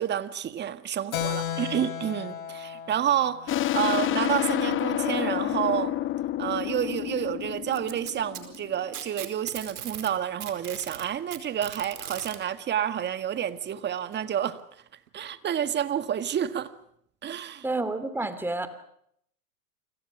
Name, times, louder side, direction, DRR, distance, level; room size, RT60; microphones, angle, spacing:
voice 1, 0.0-5.9 6.4-14.6 15.1-16.7 17.2-17.6, right 9 dB, 25° right, 1.8 m, -29 dB
Keyboard (musical), 1.1-5.2, left 9 dB, 65° left, 4.9 m, -36 dB
sound 1, 3.5-8.8, left 13 dB, 25° left, 1.2 m, -29 dB
Packing tape duct tape, 7.7-10.1 10.4-12.4 13.5-13.6 14.1-14.2 15.1-15.2, right 10 dB, 75° right, 4.8 m, -38 dB
voice 2, 17.6-18.7, right 2 dB, 5° right, 2.9 m, -29 dB
30.0 x 25.5 x 6.1 m
hypercardioid pair, 110°, 45 cm